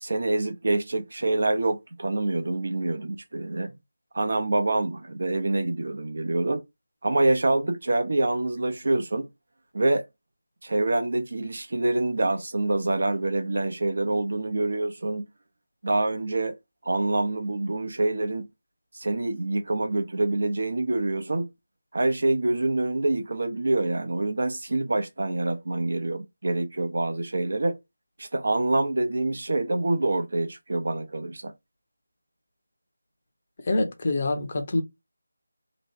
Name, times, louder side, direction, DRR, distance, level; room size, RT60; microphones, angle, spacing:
voice 1, 0.0-3.7 4.1-6.6 7.0-9.3 9.7-10.1 10.6-15.2 15.8-16.5 16.8-18.5 18.9-21.5 21.9-27.8 28.2-31.5, right 2 dB, 55° right, 0.7 m, -26 dB
voice 2, 33.6-34.8, left 2 dB, 35° left, 0.9 m, -25 dB
3.0 x 2.3 x 4.3 m
figure-of-eight pair, 165°, 0 cm